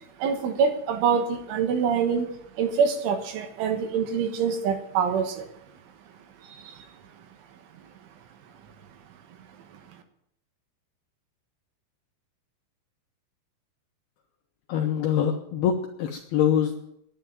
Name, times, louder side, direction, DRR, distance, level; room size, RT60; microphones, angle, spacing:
voice 1, 0.2-2.3 2.6-5.5 6.5-6.8, right 6 dB, 75° right, 7 dB, 3.7 m, -25 dB
voice 2, 14.7-15.7 16.0-16.7, left 9 dB, 80° left, 2 dB, 2.2 m, -24 dB
10.5 x 10.0 x 9.3 m, 0.77 s
omnidirectional pair, 5.8 m